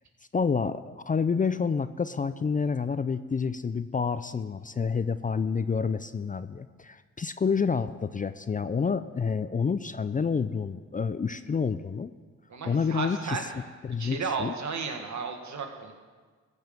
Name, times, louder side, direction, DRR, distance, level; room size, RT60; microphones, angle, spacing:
voice 1, 0.3-12.1 12.7-13.4 13.8-14.5, left 5 dB, 25° left, 13 dB, 0.4 m, -28 dB
voice 2, 12.5-13.5 14.0-15.9, right 5 dB, 60° right, 3 dB, 1.7 m, -33 dB
14.5 x 5.5 x 7.0 m, 1.5 s
supercardioid pair, 50°, 32 cm